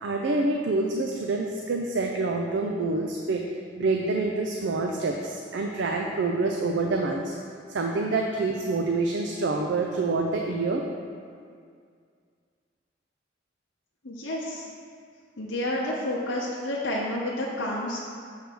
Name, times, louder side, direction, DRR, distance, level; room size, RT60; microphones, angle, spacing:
voice 1, 0.0-3.4 3.8-7.4 7.7-10.9, right 3 dB, 70° right, 1 dB, 0.4 m, -27 dB
voice 2, 14.0-14.7 15.4-18.0, left 1 dB, 90° left, -4 dB, 0.8 m, -30 dB
6.4 x 3.4 x 6.1 m, 2.2 s
head